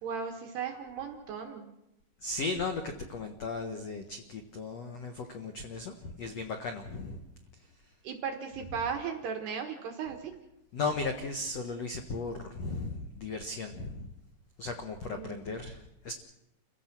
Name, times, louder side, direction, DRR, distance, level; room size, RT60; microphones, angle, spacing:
voice 1, 0.0-1.7 8.0-10.3 15.1-15.4, right 6 dB, 65° right, 4 dB, 3.3 m, -36 dB
voice 2, 2.2-7.2 10.7-14.1 14.6-16.1, left 3 dB, 80° left, 5 dB, 1.4 m, -36 dB
29.5 x 16.0 x 6.1 m, 0.87 s
omnidirectional pair, 5.4 m